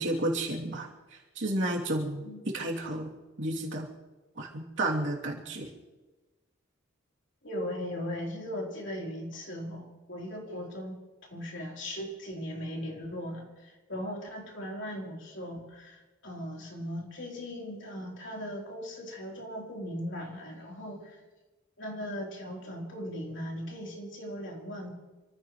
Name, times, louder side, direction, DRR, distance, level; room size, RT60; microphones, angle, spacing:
voice 1, 0.0-2.3 2.5-3.1 3.4-3.9 4.4-5.7, right 1 dB, 60° right, -2 dB, 2.8 m, -32 dB
voice 2, 7.4-11.0 11.3-21.2 21.8-24.9, equal, 60° left, -1 dB, 3.6 m, -38 dB
28.0 x 15.0 x 3.1 m, 1.2 s
head